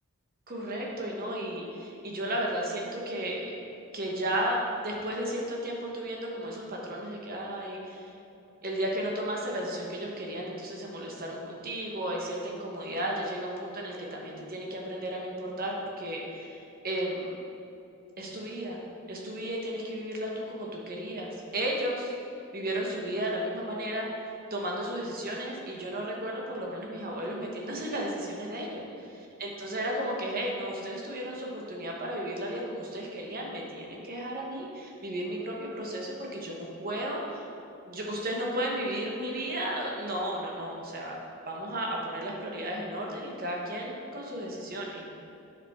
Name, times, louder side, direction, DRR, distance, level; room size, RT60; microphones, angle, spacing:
voice 1, 0.5-3.6 3.9-4.6 4.8-8.1 8.6-17.4 18.2-18.8 19.1-22.1 22.5-24.1 24.5-28.8 29.4-37.5 37.9-41.2 41.5-45.1, right 1 dB, 40° right, -1 dB, 1.2 m, -34 dB
8.8 x 5.1 x 3.7 m, 2.7 s
head